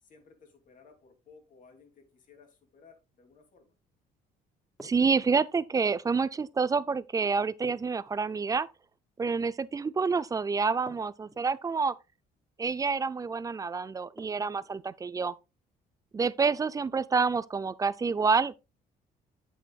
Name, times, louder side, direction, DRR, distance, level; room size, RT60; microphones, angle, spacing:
voice 1, 0.0-3.7, left 5 dB, 50° left, 2.8 m, -58 dB
sound 1, 4.8-5.6 7.6-8.7 10.8-11.6 14.2-14.8, right 1 dB, ahead, 2.5 m, -50 dB
voice 2, 4.8-8.7 9.2-11.9 12.6-15.3 16.1-18.6, right 5 dB, 20° right, 0.5 m, -28 dB
8.6 x 8.2 x 2.3 m
cardioid pair, 110°, 17 cm